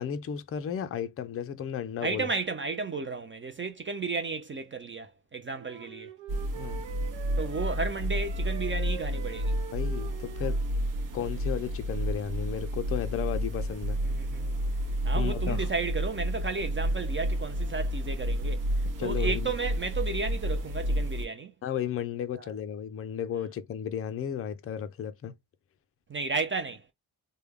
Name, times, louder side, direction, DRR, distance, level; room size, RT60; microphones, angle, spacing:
voice 1, 0.0-2.3 6.5-6.8 9.7-10.6 11.1-14.0 15.1-15.7 19.0-19.5 21.6-25.3, left 8 dB, 35° left, 0.4 m, -34 dB
voice 2, 2.0-6.1 7.4-9.5 14.0-14.6 15.0-18.6 19.0-21.5 22.3-22.5 26.1-26.9, right 4 dB, 30° right, 0.5 m, -33 dB
sound 1, 5.5-10.7, right 7 dB, 70° right, 1.1 m, -45 dB
sound 2, 6.3-21.3, equal, 45° right, 0.9 m, -30 dB
3.2 x 2.2 x 3.5 m
cardioid pair, 135°, 44 cm